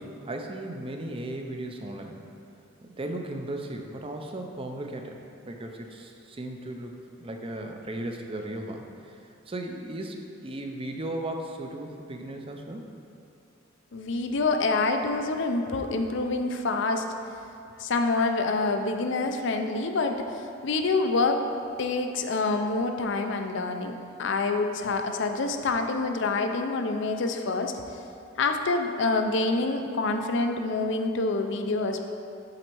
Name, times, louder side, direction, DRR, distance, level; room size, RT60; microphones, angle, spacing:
voice 1, 0.0-2.2 2.8-5.2 5.4-8.8 9.5-12.8, right 1 dB, 30° right, 3 dB, 0.5 m, -36 dB
voice 2, 13.9-17.0 17.8-21.4 21.8-28.0 28.4-32.1, left 3 dB, 65° left, 5 dB, 0.5 m, -27 dB
7.7 x 4.1 x 4.6 m, 2.5 s
head